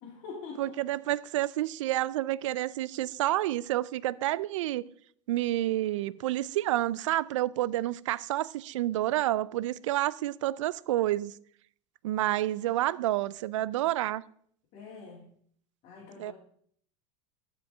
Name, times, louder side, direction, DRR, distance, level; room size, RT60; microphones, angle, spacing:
voice 1, 0.0-0.8 14.7-15.3 15.8-16.3, left 5 dB, 50° left, 2.5 m, -44 dB
voice 2, 0.6-4.8 5.3-11.4 12.0-14.2 16.2-16.3, right 15 dB, 85° right, 0.4 m, -29 dB
13.5 x 5.3 x 3.5 m
supercardioid pair, 110°, 16 cm